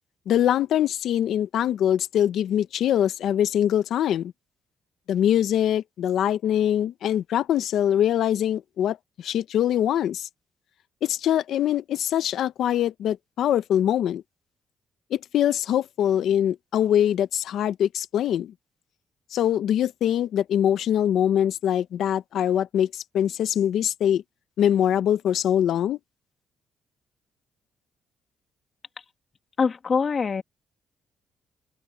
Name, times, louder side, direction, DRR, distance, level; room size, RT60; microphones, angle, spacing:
voice 1, 0.3-4.3 5.1-10.3 11.0-14.2 15.1-18.5 19.3-24.2 24.6-26.0, left 10 dB, 75° left, 0.9 m, -23 dB
voice 2, 29.6-30.4, left 5 dB, 40° left, 2.3 m, -23 dB
open air
cardioid pair, 90°, 0 cm